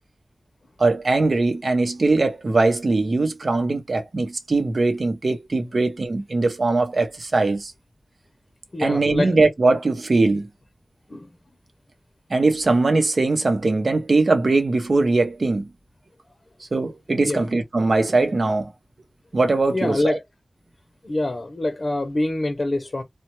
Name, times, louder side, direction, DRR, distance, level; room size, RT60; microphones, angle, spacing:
voice 1, 0.8-7.7 8.8-10.5 12.3-15.7 16.7-18.7 19.3-20.2, right 3 dB, 70° right, 0.7 m, -21 dB
voice 2, 8.7-9.3 11.1-11.3 17.2-17.4 19.7-20.2 21.0-23.0, left 2 dB, 55° left, 0.6 m, -25 dB
3.2 x 2.3 x 2.9 m
cardioid pair, 40°, 0 cm